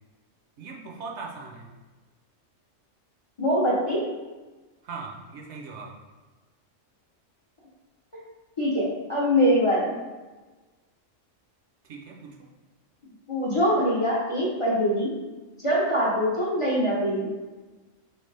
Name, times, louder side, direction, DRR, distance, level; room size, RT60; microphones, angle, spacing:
voice 1, 0.6-1.7 4.8-6.0 11.8-12.5, right 4 dB, 65° right, -1 dB, 0.9 m, -39 dB
voice 2, 3.4-4.0 8.6-9.9 13.3-15.1 15.6-17.4, equal, 30° left, -6 dB, 0.6 m, -23 dB
4.5 x 3.2 x 3.2 m, 1.2 s
omnidirectional pair, 1.3 m